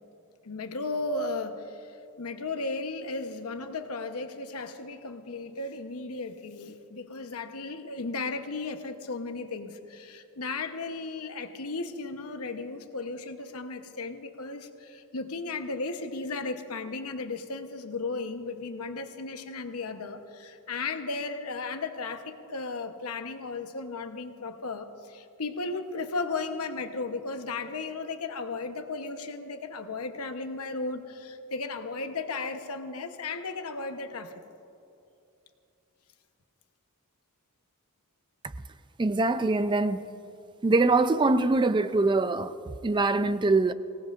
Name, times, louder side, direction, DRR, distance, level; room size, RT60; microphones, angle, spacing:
voice 1, 0.4-34.4, left 3 dB, 85° left, 1.0 m, -35 dB
voice 2, 39.0-40.1 40.6-43.7, right 3 dB, 20° right, 0.4 m, -24 dB
24.5 x 17.5 x 2.5 m
head